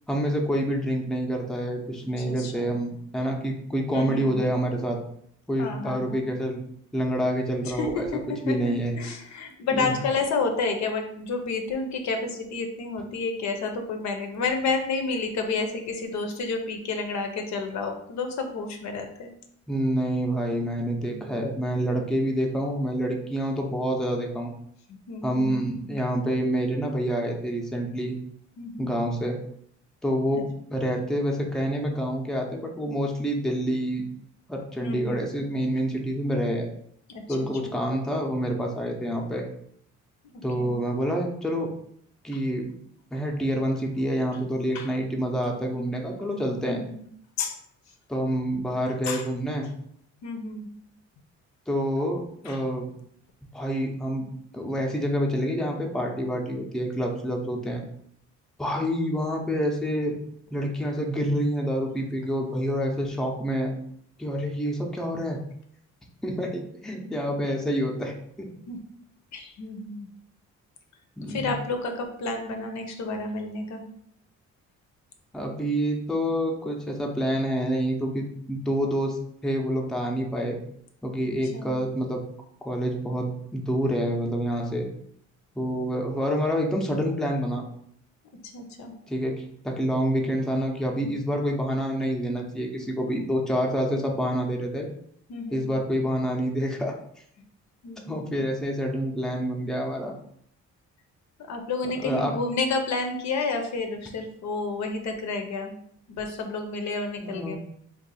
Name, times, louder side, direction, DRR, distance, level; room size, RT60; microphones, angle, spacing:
voice 1, 0.1-5.0 5.5-6.6 6.9-8.1 8.4-8.9 9.7-9.9 19.7-24.5 25.2-28.1 28.8-29.4 30.0-34.0 34.5-36.7 37.3-39.5 40.4-41.7 42.2-42.7 43.1-46.8 48.1-49.7 51.7-52.9 53.5-54.3 54.5-57.8 58.6-60.2 60.5-63.7 64.2-65.4 66.2-68.5 71.2-71.5 75.3-80.6 81.0-82.2 82.6-84.9 85.6-87.6 89.1-94.9 95.5-97.0 98.1-100.1 102.0-102.4 107.2-107.6, equal, ahead, 0 dB, 0.5 m, -27 dB
voice 2, 2.3-2.7 3.9-4.5 5.6-6.3 7.8-8.2 8.5-19.3 21.0-21.3 25.1-26.0 28.6-28.9 30.3-30.4 34.8-35.3 37.1-37.7 40.5-40.8 44.7-44.9 46.6-47.1 47.4-47.6 49.1-49.2 50.2-50.7 52.5-52.6 68.7-68.8 69.3-70.1 71.3-73.8 81.5-81.8 88.5-88.9 95.3-95.7 97.8-98.4 101.5-105.7 106.1-107.6, left 3 dB, 65° left, 4 dB, 0.6 m, -30 dB
2.6 x 2.3 x 4.0 m, 0.68 s
cardioid pair, 90°, 30 cm